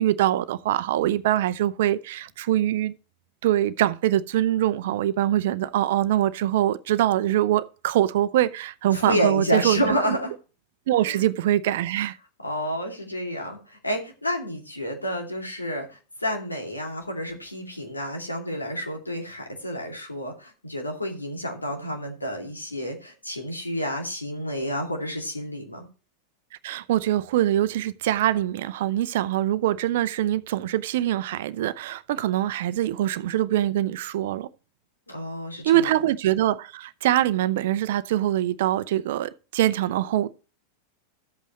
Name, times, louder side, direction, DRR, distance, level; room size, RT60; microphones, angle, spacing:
voice 1, 0.0-2.9 3.4-9.9 10.9-12.2 26.6-34.5 35.6-40.3, right 13 dB, 55° right, 0.6 m, -23 dB
voice 2, 8.9-10.3 11.0-11.3 12.4-25.9 35.1-35.9, equal, 80° left, 2.5 m, -30 dB
13.0 x 8.2 x 3.1 m
figure-of-eight pair, 90°, 0 cm